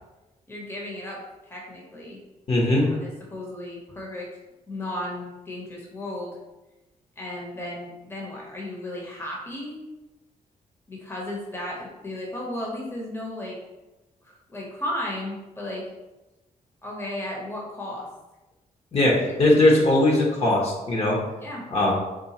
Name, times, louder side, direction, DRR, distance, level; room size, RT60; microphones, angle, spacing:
voice 1, 0.5-1.2 1.5-2.2 2.8-4.3 4.7-6.4 7.2-9.8 10.9-13.6 14.2-15.8 16.8-18.1 19.1-19.8 21.4-21.7, left 1 dB, 15° left, -2 dB, 0.8 m, -35 dB
voice 2, 2.5-2.9 18.9-21.2 21.7-21.9, left 1 dB, 40° left, -3 dB, 0.9 m, -20 dB
3.7 x 2.4 x 2.9 m, 1.1 s
cardioid pair, 85°, 15 cm